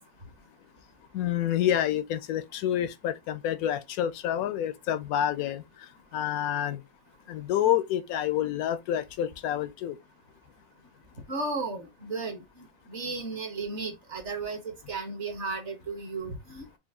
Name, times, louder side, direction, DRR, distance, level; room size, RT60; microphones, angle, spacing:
voice 1, 1.1-5.6 6.1-6.8 7.3-10.0, left 11 dB, 85° left, 1.1 m, -28 dB
voice 2, 11.3-16.7, right 3 dB, 55° right, 1.4 m, -35 dB
5.2 x 2.4 x 3.5 m
omnidirectional pair, 1.5 m